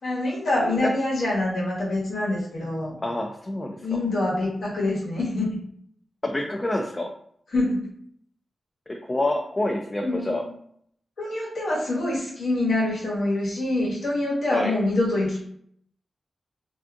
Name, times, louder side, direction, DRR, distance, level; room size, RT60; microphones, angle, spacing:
voice 1, 0.0-3.0 3.8-5.6 7.5-7.8 10.0-10.4 11.2-15.4, left 2 dB, 90° left, -4 dB, 1.1 m, -25 dB
voice 2, 3.0-3.8 6.2-7.1 8.9-10.4 14.5-14.7, left 1 dB, 25° left, 2 dB, 0.3 m, -27 dB
3.4 x 2.5 x 2.4 m, 0.66 s
wide cardioid pair, 90°, 0 cm